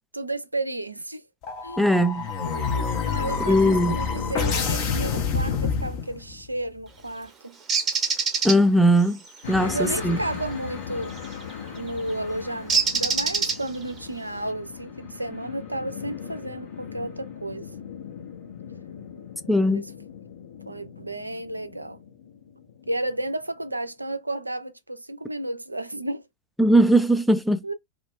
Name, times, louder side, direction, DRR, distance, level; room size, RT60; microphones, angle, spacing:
voice 1, 0.1-1.2 1.6-2.0 3.0-7.6 9.6-11.2 11.7-17.7 19.7-19.9 20.7-22.0 22.9-26.2 27.6-27.7, right 1 dB, 85° right, 0.3 m, -32 dB
sound 1, 1.4-6.4, left 5 dB, 45° left, 0.7 m, -27 dB
voice 2, 1.8-2.3 3.4-4.0 8.4-9.2 9.5-10.2 19.5-19.8 26.6-27.6, equal, ahead, 0.4 m, -19 dB
Bird, 7.7-8.6 11.2-11.4 12.7-13.9, right 5 dB, 20° right, 0.7 m, -24 dB
sound 2, 9.4-23.7, left 7 dB, 60° left, 1.1 m, -39 dB
2.4 x 2.2 x 3.6 m
figure-of-eight pair, 90°, 0 cm